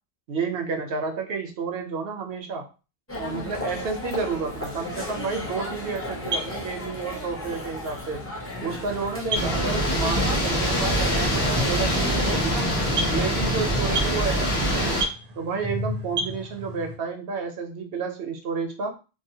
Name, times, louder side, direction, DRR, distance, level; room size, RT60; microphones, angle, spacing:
voice 1, 0.3-2.7 3.2-8.2 8.6-12.7 13.1-15.0 15.4-19.0, right 5 dB, 75° right, 4 dB, 0.8 m, -30 dB
sound 1, 3.1-12.4, left 2 dB, 15° left, 0.7 m, -35 dB
sound 2, 6.0-17.0, right 1 dB, 55° right, 0.5 m, -34 dB
sound 3, 9.3-15.0, equal, 75° left, 1.1 m, -24 dB
2.7 x 2.1 x 2.7 m, 0.32 s
omnidirectional pair, 1.0 m